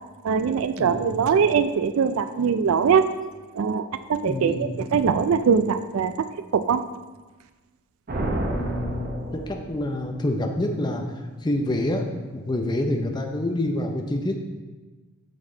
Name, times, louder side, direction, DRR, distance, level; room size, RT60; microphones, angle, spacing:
voice 1, 0.2-3.1 3.5-6.3 6.5-6.8, right 6 dB, 70° right, 11 dB, 0.4 m, -22 dB
voice 2, 0.8-1.1 4.2-4.8 8.5-11.0 11.4-14.3, left 1 dB, 20° left, 3 dB, 0.6 m, -27 dB
sound 1, 8.1-10.0, right 1 dB, 45° right, 0.8 m, -30 dB
8.5 x 6.1 x 3.8 m, 1.2 s
head